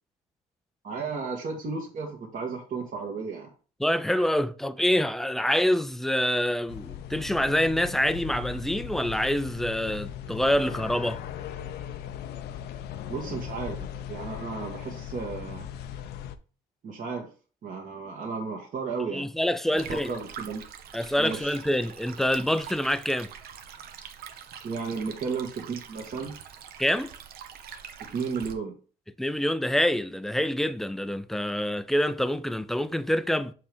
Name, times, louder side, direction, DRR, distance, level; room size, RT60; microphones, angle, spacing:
voice 1, 0.8-3.5 13.1-15.7 16.8-17.3 17.6-19.3 19.7-20.6 21.2-21.6 24.6-26.3 28.1-28.8, right 5 dB, 50° right, 1.6 m, -34 dB
voice 2, 3.8-11.2 19.1-20.1 20.9-23.3 26.8-27.1 29.2-33.5, equal, ahead, 0.4 m, -26 dB
sound 1, 6.7-16.3, left 9 dB, 75° left, 0.6 m, -38 dB
Stream, 19.8-28.5, right 8 dB, 65° right, 0.9 m, -44 dB
6.8 x 3.2 x 5.3 m
cardioid pair, 110°, 17 cm